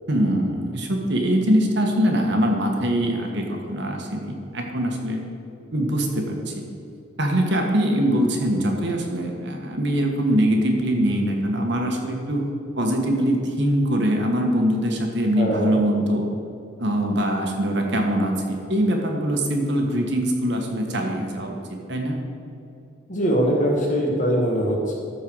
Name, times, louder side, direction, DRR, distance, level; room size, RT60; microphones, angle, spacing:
voice 1, 0.1-5.2 5.7-6.5 7.2-12.4 12.8-16.3 16.8-21.6 21.9-22.2, equal, 55° right, 1 dB, 1.4 m, -23 dB
voice 2, 15.4-15.8 23.1-24.9, equal, 35° left, -1 dB, 1.7 m, -22 dB
13.5 x 4.7 x 6.3 m, 2.6 s
head